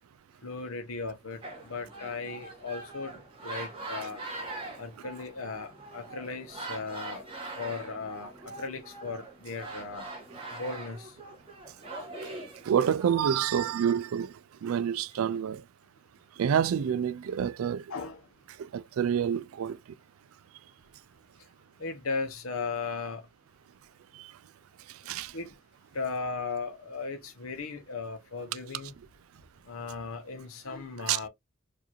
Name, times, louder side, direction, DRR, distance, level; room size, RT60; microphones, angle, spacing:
voice 1, 0.4-4.2 4.8-7.2 7.6-10.1 10.5-11.2 17.9-18.2 21.8-23.3 25.3-25.5 25.9-28.9 29.7-31.3, left 4 dB, 85° left, 0.9 m, -37 dB
sound 1, 1.4-13.5, right 2 dB, 25° right, 1.5 m, -42 dB
voice 2, 12.6-15.6 16.4-17.9 18.6-19.8 24.1-24.3 24.9-25.3 31.1-31.2, right 8 dB, 85° right, 0.3 m, -28 dB
4.7 x 2.6 x 2.9 m
head